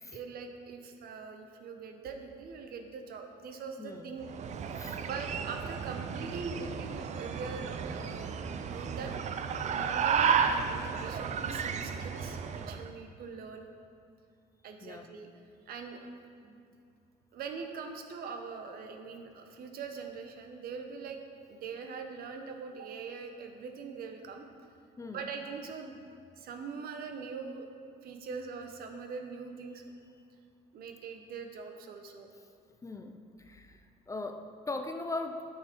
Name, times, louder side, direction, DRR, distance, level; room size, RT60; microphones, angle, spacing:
voice 1, 0.1-4.3 4.7-4.8 5.0-9.2 9.7-13.7 14.6-15.3 15.7-16.1 16.4-16.6 17.3-21.2 21.5-24.5 25.1-26.0 26.4-27.7 28.0-29.9 30.7-32.3, right 5 dB, 65° right, 5 dB, 0.9 m, -42 dB
voice 2, 3.8-4.1 4.8-5.0 14.8-15.1 25.0-25.3 32.8-33.8 34.1-35.6, left 2 dB, 20° left, 6 dB, 0.5 m, -40 dB
sound 1, 4.2-12.9, right 6 dB, 45° right, 0.5 m, -33 dB
9.2 x 6.5 x 4.5 m, 2.3 s
cardioid pair, 110°, 17 cm